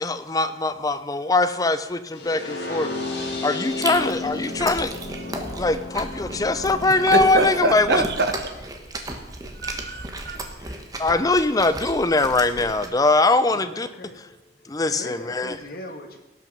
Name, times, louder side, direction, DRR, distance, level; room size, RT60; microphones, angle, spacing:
voice 1, 0.0-2.9 3.4-4.9 5.6-8.0 11.0-13.9 14.7-15.6, left 2 dB, 20° left, 0.5 m, -22 dB
sound 1, 2.1-8.1, left 2 dB, 70° left, 1.9 m, -33 dB
Chewing mastication, 3.6-12.9, right 2 dB, 20° right, 1.2 m, -35 dB
voice 2, 7.1-8.5 9.6-10.4, right 2 dB, 60° right, 1.1 m, -25 dB
voice 3, 10.6-10.9 13.4-14.2 14.9-16.2, left 1 dB, 55° left, 1.6 m, -40 dB
18.0 x 6.1 x 5.4 m
head